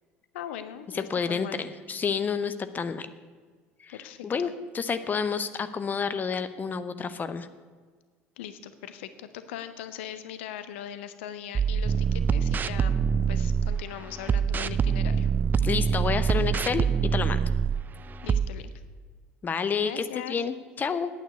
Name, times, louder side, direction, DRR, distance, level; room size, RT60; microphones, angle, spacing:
voice 1, 0.3-1.6 3.9-4.5 8.4-15.3 18.2-18.7 19.8-20.4, left 10 dB, 65° left, 12 dB, 0.7 m, -40 dB
voice 2, 0.9-3.1 3.8-4.0 4.2-4.5 4.7-7.5 15.6-16.8 17.1-17.4 19.4-21.1, left 6 dB, 25° left, 12 dB, 0.7 m, -29 dB
sound 1, 11.5-13.8 14.3-17.8 18.3-18.5, right 6 dB, 25° right, 0.4 m, -25 dB
9.7 x 9.0 x 8.1 m, 1.5 s
figure-of-eight pair, 65°, 7 cm